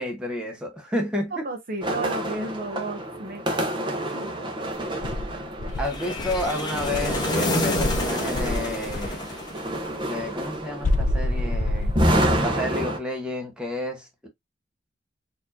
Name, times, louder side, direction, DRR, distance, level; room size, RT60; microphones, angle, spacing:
voice 1, 0.0-1.5 5.8-9.2 10.1-12.0 12.4-14.3, left 1 dB, 5° right, 1.3 m, -31 dB
voice 2, 1.3-4.5 4.9-5.0, right 2 dB, 50° right, 0.9 m, -34 dB
sound 1, 1.8-13.0, right 1 dB, 25° right, 0.9 m, -29 dB
Insect, 5.0-7.3 7.8-9.2 10.8-12.5, left 1 dB, 45° left, 0.6 m, -27 dB
sound 2, 5.8-10.1, left 1 dB, 25° left, 1.1 m, -28 dB
4.3 x 2.9 x 2.7 m
head